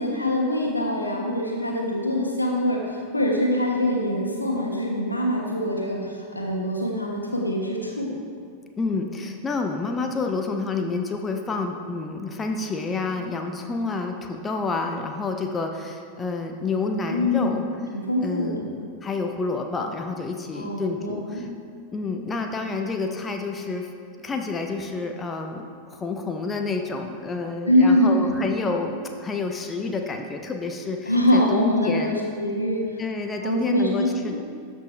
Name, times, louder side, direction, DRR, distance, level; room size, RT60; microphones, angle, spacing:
voice 1, 0.0-8.1 17.1-17.6 17.9-18.6 20.5-21.4 27.7-28.4 31.1-33.0 33.4-34.4, left 1 dB, 85° left, 0 dB, 1.2 m, -24 dB
voice 2, 8.8-17.6 18.2-18.6 19.0-21.5 21.9-23.9 24.2-32.1 33.0-34.4, left 3 dB, 15° left, 4 dB, 0.6 m, -29 dB
13.0 x 5.2 x 3.2 m, 2.2 s
figure-of-eight pair, 90°, 0 cm